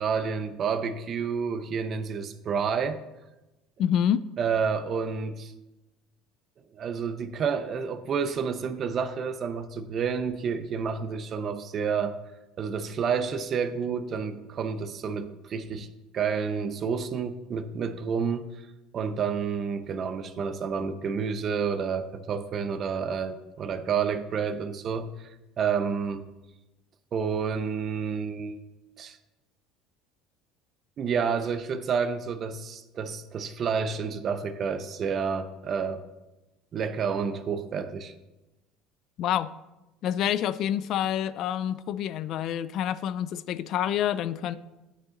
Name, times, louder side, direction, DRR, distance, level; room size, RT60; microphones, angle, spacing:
voice 1, 0.0-3.0 4.4-5.5 6.7-12.2 12.6-15.9 16.1-18.7 18.9-26.3 27.1-28.6 29.0-29.2 31.0-36.0 36.7-38.1, right 6 dB, 45° right, 11 dB, 0.7 m, -29 dB
voice 2, 3.8-4.2 39.2-39.5 40.0-44.6, left 10 dB, 55° left, 15 dB, 0.3 m, -27 dB
8.9 x 6.4 x 3.8 m, 1.0 s
supercardioid pair, 105°, 0 cm